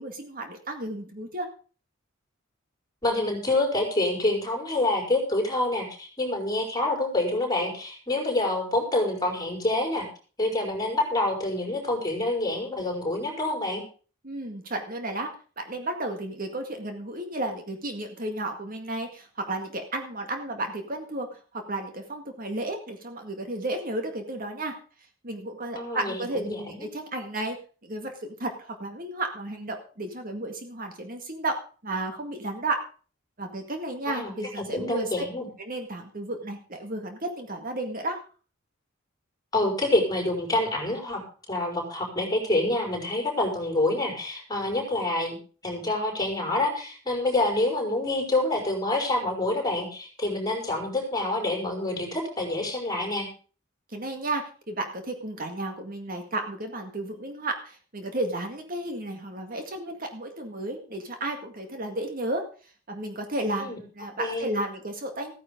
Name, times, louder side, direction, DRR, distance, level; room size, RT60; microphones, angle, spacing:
voice 1, 0.0-1.5 14.2-15.3 15.6-24.8 25.2-27.6 27.8-31.6 31.8-32.8 33.4-35.2 35.6-38.2 53.9-62.4 62.9-65.3, right 2 dB, 45° right, 5 dB, 2.0 m, -33 dB
voice 2, 3.0-10.1 10.4-13.8 25.7-26.9 34.1-35.5 39.5-41.2 41.5-45.4 45.6-53.3 63.6-63.8 64.2-64.5, left 2 dB, 20° left, 1 dB, 5.0 m, -27 dB
15.5 x 9.9 x 5.2 m, 0.39 s
head